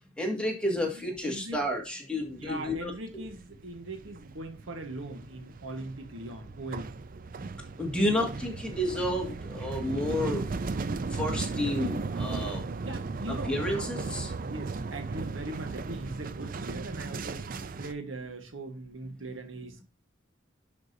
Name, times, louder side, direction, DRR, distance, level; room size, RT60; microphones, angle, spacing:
voice 1, 0.2-3.2 7.8-10.5 11.1-12.6 13.3-14.3, left 1 dB, 5° left, 1.9 m, -31 dB
voice 2, 1.2-1.6 2.2-6.9 8.0-8.3 12.8-14.1 14.5-19.8, right 2 dB, 75° right, 1.4 m, -40 dB
sound 1, 2.2-2.7 3.0-17.9, right 3 dB, 45° right, 0.5 m, -36 dB
11.0 x 5.2 x 2.7 m
head